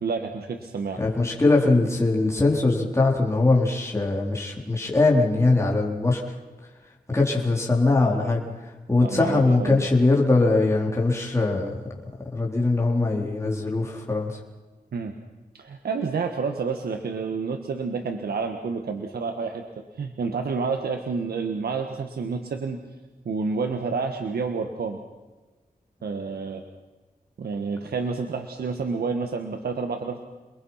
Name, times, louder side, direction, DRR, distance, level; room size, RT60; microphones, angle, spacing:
voice 1, 0.0-1.0 9.0-9.9 14.9-15.1 15.5-19.6 20.0-22.8 23.2-25.0 26.0-26.6 27.4-30.2, right 4 dB, 85° right, 5 dB, 1.6 m, -29 dB
voice 2, 1.0-6.2 7.1-8.4 8.9-11.8 12.3-14.3, left 3 dB, 20° left, -2 dB, 4.1 m, -21 dB
29.0 x 21.0 x 5.8 m, 1.2 s
wide cardioid pair, 80°, 16 cm